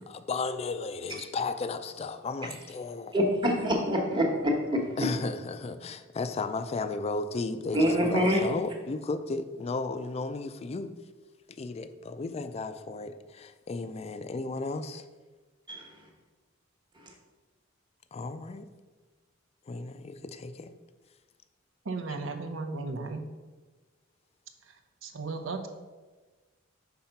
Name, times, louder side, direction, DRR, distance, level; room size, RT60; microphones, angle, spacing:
voice 1, 0.0-3.2 5.0-10.9 11.5-15.0 18.1-18.7 19.7-20.7, left 3 dB, 30° left, 0.4 m, -34 dB
voice 2, 3.1-4.8 7.7-8.4 15.7-15.9, equal, 25° right, 1.1 m, -25 dB
voice 3, 21.8-23.3 25.0-25.7, right 3 dB, 70° right, 0.7 m, -35 dB
5.7 x 3.8 x 5.7 m
head